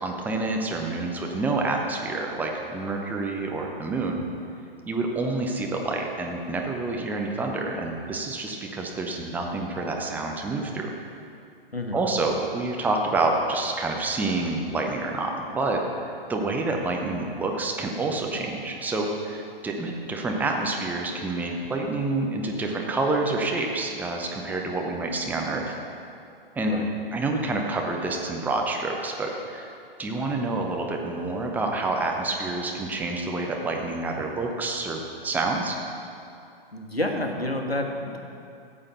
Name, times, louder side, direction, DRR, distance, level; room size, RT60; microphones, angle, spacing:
voice 1, 0.0-4.2 4.9-10.9 11.9-25.8 26.6-26.8 27.1-29.7 30.0-35.8, right 2 dB, 5° right, 1 dB, 0.8 m, -28 dB
voice 2, 36.7-38.2, left 1 dB, 85° left, 3 dB, 1.4 m, -29 dB
14.0 x 8.6 x 4.2 m, 2.5 s
figure-of-eight pair, 115°, 30 cm